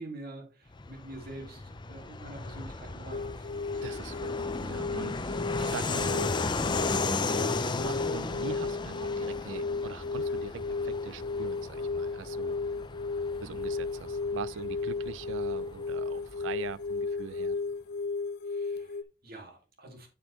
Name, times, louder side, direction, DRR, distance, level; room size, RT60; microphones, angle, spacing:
voice 1, 0.0-3.8 13.4-13.6 18.4-20.1, right 2 dB, 55° right, 2.1 m, -46 dB
Fixed-wing aircraft airplane, 0.7-16.9, left 3 dB, 25° left, 0.6 m, -36 dB
sound 1, 3.1-19.0, left 4 dB, 60° left, 0.6 m, -34 dB
voice 2, 3.8-6.3 7.0-12.6 13.4-17.6, right 7 dB, 80° right, 0.3 m, -43 dB
7.6 x 7.1 x 3.0 m
head